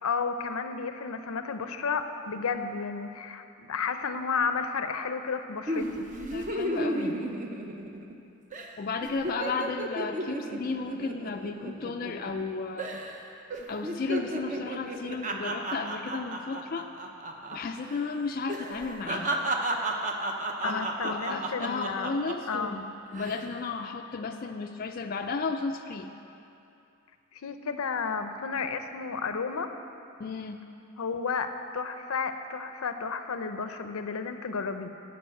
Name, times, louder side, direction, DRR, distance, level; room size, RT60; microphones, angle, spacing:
voice 1, 0.0-6.1 20.6-22.2 22.5-22.8 27.3-29.8 31.0-34.9, left 5 dB, 85° left, 8 dB, 0.6 m, -32 dB
sound 1, 5.7-8.2 8.5-8.7 9.0-12.5 12.8-13.2 13.5-17.6 17.8-18.0 18.5-22.6 23.1-23.5, right 1 dB, 35° right, 0.7 m, -33 dB
voice 2, 6.3-7.2 8.8-13.0 13.7-16.9 17.5-19.3 20.6-26.1 30.2-30.6, left 4 dB, 40° left, 4 dB, 0.4 m, -34 dB
12.0 x 5.3 x 7.7 m, 2.7 s
head